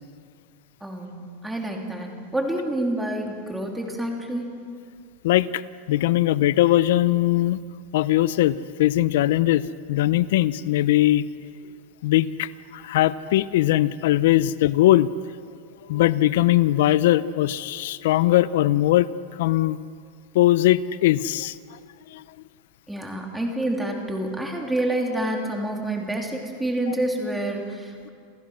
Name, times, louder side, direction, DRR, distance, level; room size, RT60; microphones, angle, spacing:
voice 1, 0.8-4.5 14.2-14.3 22.9-28.1, right 1 dB, 5° right, 0 dB, 3.1 m, -28 dB
voice 2, 5.2-5.6 5.9-7.6 7.9-9.6 9.9-11.3 12.0-15.1 15.9-19.1 19.4-19.8 20.3-21.6 22.1-22.2, left 14 dB, 75° left, 17 dB, 0.6 m, -20 dB
28.5 x 15.0 x 6.3 m, 2.3 s
supercardioid pair, 140°, 0 cm